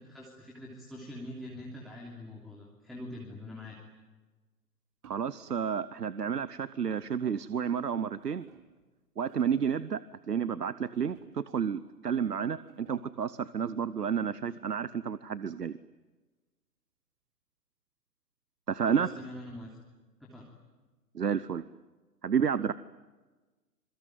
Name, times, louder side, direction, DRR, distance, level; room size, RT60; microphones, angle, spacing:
voice 1, 0.0-3.8 18.8-19.8 20.2-20.5, left 1 dB, ahead, -3 dB, 3.1 m, -44 dB
sound 1, 5.0-5.9 6.9-7.4 8.0-8.8 9.2-9.9 10.9-11.6 12.2-12.3 12.6-13.3 14.7-15.8, right 9 dB, 45° right, 5.1 m, -58 dB
voice 2, 5.0-8.5 9.2-10.0 10.3-15.8 18.7-19.1 21.1-21.6 22.2-22.7, right 7 dB, 70° right, 17 dB, 1.1 m, -31 dB
26.5 x 23.5 x 9.3 m, 1.3 s
figure-of-eight pair, 125°, 49 cm